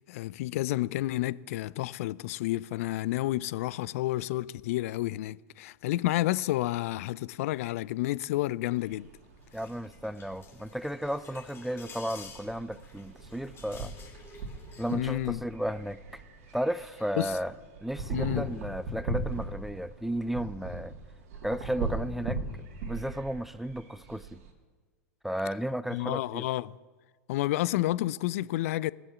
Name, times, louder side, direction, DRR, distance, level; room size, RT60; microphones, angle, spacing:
voice 1, 0.0-9.1 14.9-15.4 17.2-17.3 18.1-18.4 25.9-26.8 27.3-28.9, left 16 dB, 65° left, 0.4 m, -30 dB
sound 1, 8.8-24.5, right 2 dB, 65° right, 2.2 m, -40 dB
sound 2, 9.4-15.0, left 5 dB, 30° left, 3.0 m, -51 dB
voice 2, 9.5-13.9 14.8-16.2 16.5-17.5 17.8-20.9 21.4-22.4 22.8-24.4 25.2-26.5, equal, ahead, 0.4 m, -34 dB
17.5 x 7.2 x 7.1 m
hypercardioid pair, 95°, 8 cm